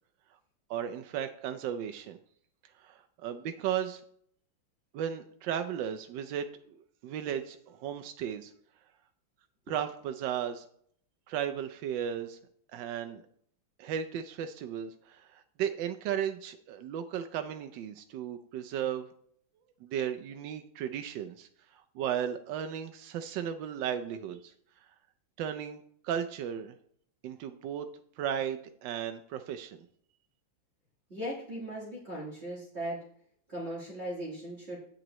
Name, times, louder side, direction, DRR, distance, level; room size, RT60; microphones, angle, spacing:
voice 1, 0.7-2.2 2.8-4.0 4.9-6.8 7.0-8.5 9.7-10.6 11.3-12.4 12.7-13.2 13.8-19.1 19.8-24.5 25.4-26.7 27.2-27.9 28.2-29.8, right 9 dB, 75° right, 7 dB, 1.2 m, -35 dB
voice 2, 31.1-33.0 33.5-34.8, right 1 dB, 35° right, -5 dB, 2.0 m, -38 dB
8.8 x 8.8 x 3.0 m, 0.63 s
omnidirectional pair, 2.1 m